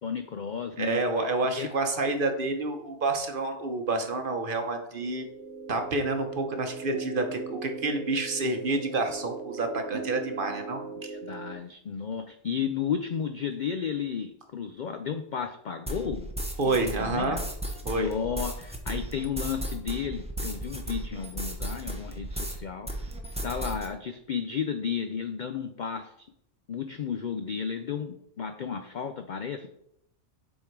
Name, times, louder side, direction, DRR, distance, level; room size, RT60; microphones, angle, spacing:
voice 1, 0.0-1.7 11.0-16.3 16.7-17.4 17.9-22.9 23.4-26.3 26.7-29.7, left 7 dB, 75° left, 7 dB, 0.4 m, -33 dB
voice 2, 0.8-5.2 5.7-11.1 16.6-17.4 17.8-18.1, right 2 dB, 45° right, 5 dB, 0.9 m, -29 dB
sound 1, 4.9-11.5, right 4 dB, 70° right, 1.0 m, -39 dB
sound 2, 15.9-22.6 22.9-23.9, right 1 dB, 5° right, 0.7 m, -35 dB
7.8 x 3.8 x 4.5 m, 0.74 s
omnidirectional pair, 1.4 m